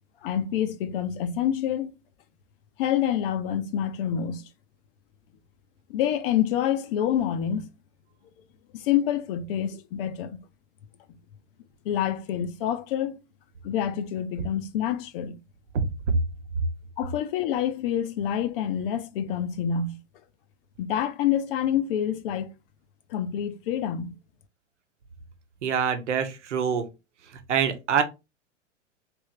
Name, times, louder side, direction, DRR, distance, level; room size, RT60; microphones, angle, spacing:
voice 1, 0.2-1.9 2.8-4.5 5.9-7.7 8.7-10.4 11.8-13.2 13.6-15.4 17.0-20.0 20.8-22.5 23.1-24.1, left 9 dB, 50° left, 0.7 m, -27 dB
voice 2, 25.6-26.8 27.5-28.0, right 7 dB, 70° right, 0.9 m, -25 dB
3.4 x 3.1 x 3.3 m
figure-of-eight pair, 100°, 37 cm